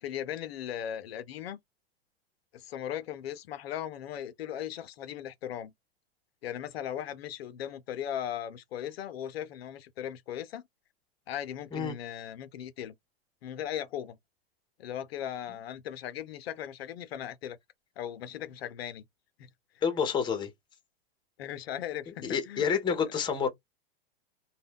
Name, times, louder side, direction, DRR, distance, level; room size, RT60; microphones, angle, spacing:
voice 1, 0.0-1.6 2.5-5.7 6.4-10.6 11.3-12.9 13.4-14.2 14.8-17.6 18.0-19.0 19.4-19.5 21.4-22.7, left 10 dB, 80° left, 0.5 m, -38 dB
voice 2, 19.8-20.5 22.2-23.5, left 6 dB, 15° left, 0.7 m, -28 dB
2.2 x 2.1 x 3.4 m
hypercardioid pair, 120°, 30 cm